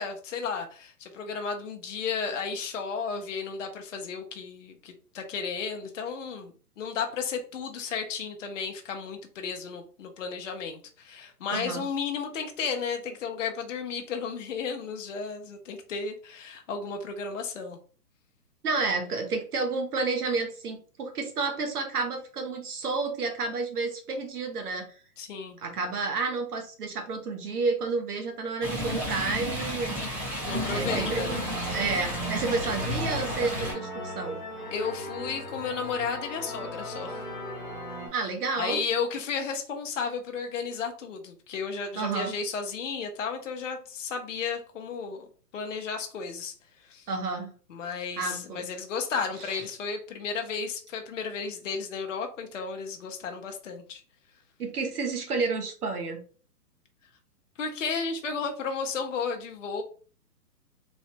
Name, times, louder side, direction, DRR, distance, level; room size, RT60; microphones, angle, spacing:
voice 1, 0.0-17.8 25.2-25.6 30.4-31.5 34.7-37.2 38.6-45.3 45.5-46.5 46.8-47.1 47.7-54.0 57.6-59.8, left 5 dB, 50° left, 4 dB, 0.5 m, -33 dB
voice 2, 11.5-11.8 18.6-24.9 25.6-30.0 30.7-31.4 31.7-34.4 38.1-38.8 42.0-42.4 47.1-47.5 48.2-48.7 49.4-49.5 54.6-56.2, right 4 dB, 65° right, 4 dB, 0.8 m, -30 dB
Stream, 28.6-33.7, equal, 20° right, 0.9 m, -32 dB
sound 1, 30.5-38.1, equal, 10° left, 0.9 m, -37 dB
3.1 x 2.0 x 2.7 m, 0.41 s
hypercardioid pair, 165°, 48 cm